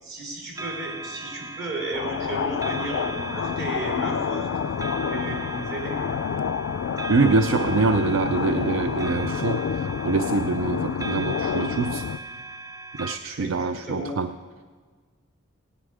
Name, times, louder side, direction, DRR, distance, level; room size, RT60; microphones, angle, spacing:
voice 1, 0.0-4.5 5.1-6.0 13.4-14.1, right 2 dB, 55° right, -2 dB, 3.6 m, -34 dB
sound 1, 0.5-13.2, right 3 dB, 15° right, 0.5 m, -38 dB
sound 2, 1.9-12.2, left 7 dB, 85° left, 0.4 m, -28 dB
voice 2, 7.1-9.7 10.0-12.0 13.0-14.3, right 4 dB, 80° right, 10 dB, 0.4 m, -24 dB
18.0 x 9.7 x 4.9 m, 1.5 s
head